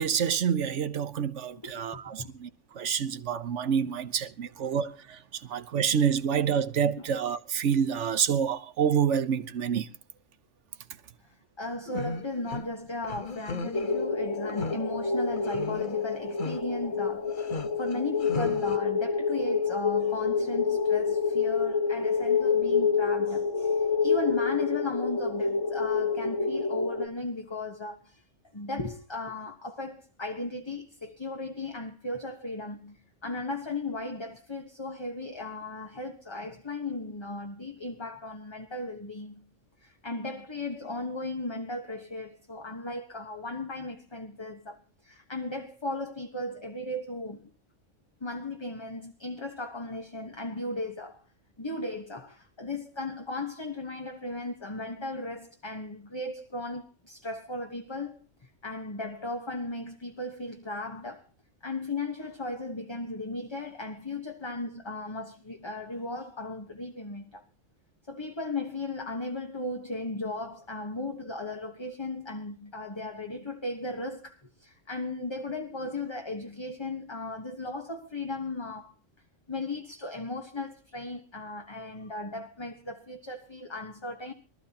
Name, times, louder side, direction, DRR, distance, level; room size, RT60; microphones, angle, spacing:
voice 1, 0.0-2.5 2.8-5.2 5.5-9.9, right 7 dB, 70° right, 1.2 m, -27 dB
voice 2, 1.5-2.3 7.0-7.1 11.2-28.2 28.5-39.5 39.8-47.5 48.2-51.2 51.6-61.3 61.6-67.4 68.1-78.9 79.5-84.3, left 2 dB, 25° left, 1.3 m, -36 dB
sound 1, 11.9-12.6 13.0-13.9 14.5-14.8 15.4-16.0 16.4-16.6 17.3-18.8, left 4 dB, 45° left, 1.2 m, -36 dB
sound 2, 13.7-27.1, left 5 dB, 75° left, 1.8 m, -28 dB
24.0 x 13.5 x 2.9 m
omnidirectional pair, 1.3 m